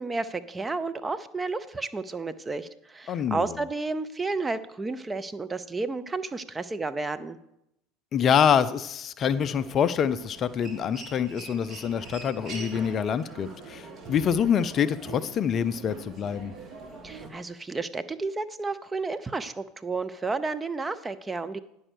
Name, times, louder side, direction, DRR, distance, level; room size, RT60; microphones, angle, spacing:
voice 1, 0.0-7.4 17.0-21.6, right 3 dB, 20° right, 12 dB, 0.6 m, -32 dB
voice 2, 3.1-3.5 8.1-16.5, left 8 dB, 40° left, 14 dB, 0.4 m, -26 dB
Human voice, 9.2-17.3, right 3 dB, 40° right, 1.9 m, -43 dB
9.9 x 5.5 x 6.3 m, 0.81 s
hypercardioid pair, 70°, 0 cm